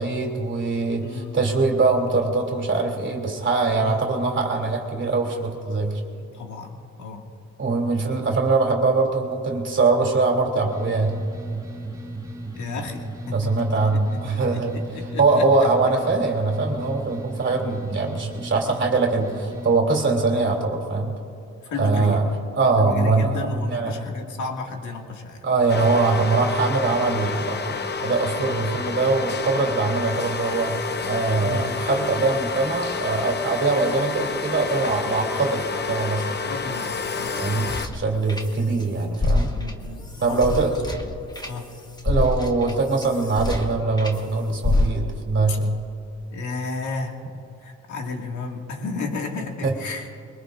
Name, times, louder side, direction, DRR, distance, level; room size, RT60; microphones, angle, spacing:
voice 1, 0.0-6.0 7.6-11.2 13.3-21.2 21.7-22.3 22.5-24.0 25.4-27.7 28.0-36.3 37.4-39.5 40.2-40.7 42.0-45.8 49.6-49.7, right 3 dB, 40° right, 0 dB, 3.1 m, -22 dB
voice 2, 1.0-1.4 1.6-1.7 3.8-4.0 6.3-7.3 12.6-13.5 14.3-15.4 21.6-22.2 22.8-25.4 31.4-31.8 36.4-37.6 39.2-40.7 41.4-41.7 45.5-45.6 46.3-47.2 47.6-50.1, left 3 dB, 75° left, 2 dB, 2.2 m, -33 dB
sound 1, 10.6-19.7, right 2 dB, 10° right, 2.0 m, -35 dB
sound 2, 25.7-37.9, left 4 dB, 35° left, 0.9 m, -29 dB
sound 3, 36.7-38.8 39.1-44.2 44.6-45.3, left 2 dB, 15° left, 1.4 m, -27 dB
22.5 x 21.0 x 2.6 m, 2.6 s
cardioid pair, 90°, 30 cm